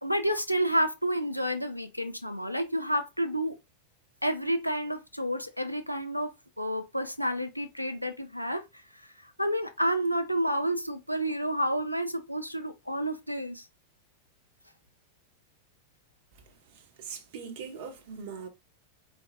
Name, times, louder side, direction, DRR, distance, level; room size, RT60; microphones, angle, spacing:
voice 1, 0.0-3.6 4.2-8.6 9.4-13.6, equal, 90° left, 0.5 m, -30 dB
voice 2, 16.3-18.5, right 6 dB, 50° right, 0.8 m, -42 dB
4.0 x 2.2 x 2.5 m
figure-of-eight pair, 90°, 0 cm